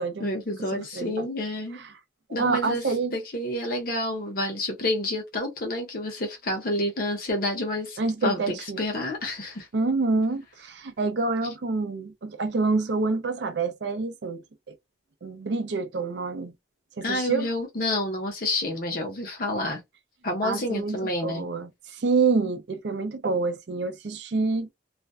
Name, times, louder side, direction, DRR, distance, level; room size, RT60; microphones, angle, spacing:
voice 1, 0.2-1.8 2.3-9.7 17.0-19.8 20.2-21.5, left 1 dB, 50° left, 0.8 m, -29 dB
voice 2, 0.7-1.3 1.7-1.9 2.4-3.1 8.0-8.8 9.7-14.7 15.2-16.5 17.0-17.5 20.4-24.7, right 4 dB, 65° right, 0.5 m, -27 dB
2.4 x 2.2 x 2.3 m
head